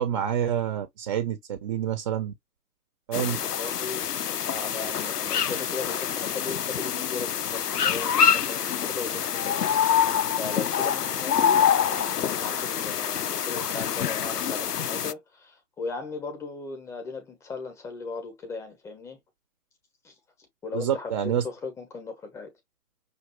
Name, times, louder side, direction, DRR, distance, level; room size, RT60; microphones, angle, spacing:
voice 1, 0.0-2.3 3.1-3.4 20.7-21.4, right 9 dB, 20° right, 0.8 m, -27 dB
sound 1, 3.1-15.1, left 8 dB, 85° left, 0.6 m, -26 dB
voice 2, 3.4-19.2 20.0-20.1 20.6-22.5, left 4 dB, 5° left, 0.9 m, -37 dB
6.5 x 2.7 x 3.0 m
figure-of-eight pair, 140°, 46 cm